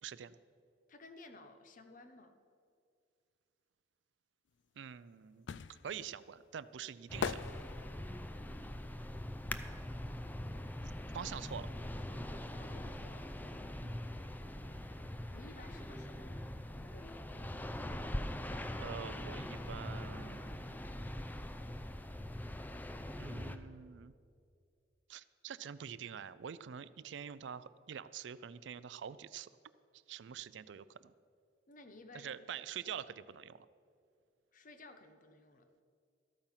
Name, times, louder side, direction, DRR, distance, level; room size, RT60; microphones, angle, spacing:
voice 1, 0.0-0.4 4.8-7.4 11.1-11.7 13.8-14.0 18.8-20.8 23.2-24.1 25.1-29.5 29.9-31.1 32.1-33.7, right 8 dB, 75° right, 16 dB, 0.4 m, -46 dB
voice 2, 0.9-2.3 10.4-10.9 12.5-13.3 14.6-16.5 16.8-17.4 31.7-32.4 34.5-35.7, left 2 dB, 45° left, 8 dB, 0.9 m, -56 dB
sound 1, 4.6-10.5 10.7-12.3 12.6-12.7, left 6 dB, 75° left, 0.4 m, -43 dB
sound 2, 7.1-23.6, left 1 dB, 10° left, 0.5 m, -42 dB
13.5 x 8.9 x 5.7 m, 2.3 s
head